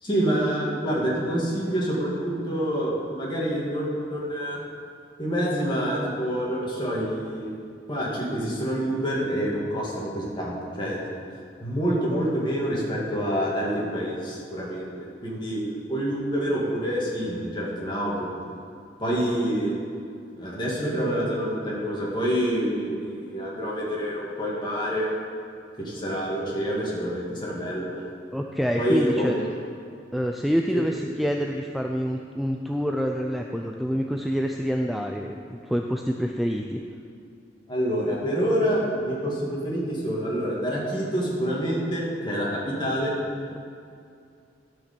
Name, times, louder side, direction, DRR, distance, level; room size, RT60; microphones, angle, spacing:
voice 1, 0.0-4.6 5.2-7.5 7.9-11.0 11.6-15.6 15.9-18.3 19.0-19.8 20.4-25.1 25.8-28.1 28.8-29.3 30.7-30.8 37.7-43.1, equal, 25° left, -5 dB, 2.3 m, -27 dB
voice 2, 28.3-29.4 30.1-36.8, equal, ahead, 2 dB, 0.4 m, -27 dB
12.5 x 5.2 x 6.9 m, 2.4 s
head